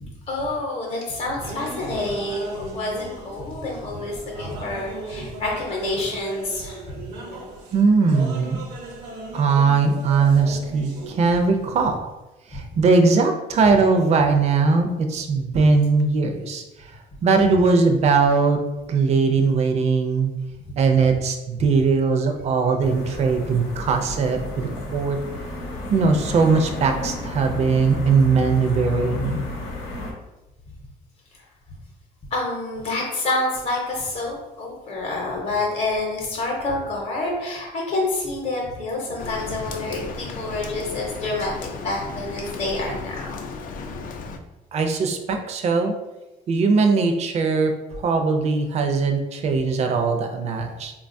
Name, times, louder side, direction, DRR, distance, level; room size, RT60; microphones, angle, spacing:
voice 1, 0.0-7.6 12.5-12.8 29.5-29.6 32.3-43.4, left 2 dB, 40° left, -2 dB, 0.8 m, -28 dB
sound 1, 1.4-11.9, right 2 dB, 85° right, 0.7 m, -37 dB
voice 2, 7.7-8.6 9.3-12.0 12.5-16.6 17.2-18.6 18.9-20.3 20.8-25.2 25.9-29.4 44.7-45.9 46.5-50.9, right 4 dB, 40° right, 4 dB, 0.4 m, -20 dB
sound 2, 22.8-30.1, left 3 dB, 80° left, 0.8 m, -32 dB
Rain, 39.2-44.4, left 4 dB, 55° left, 0.4 m, -35 dB
3.7 x 2.3 x 2.6 m, 1.0 s
cardioid pair, 110°, 17 cm